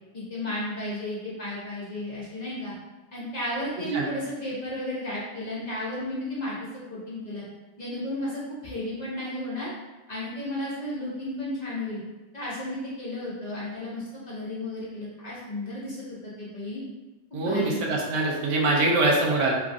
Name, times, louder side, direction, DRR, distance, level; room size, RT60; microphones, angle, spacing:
voice 1, 0.1-2.7 3.1-7.4 7.8-9.7 10.1-12.0 12.3-16.8 17.3-17.9, left 1 dB, 40° left, -7 dB, 0.8 m, -33 dB
voice 2, 17.3-19.5, right 2 dB, 85° right, -2 dB, 1.0 m, -23 dB
3.3 x 2.4 x 2.5 m, 1.1 s
omnidirectional pair, 1.2 m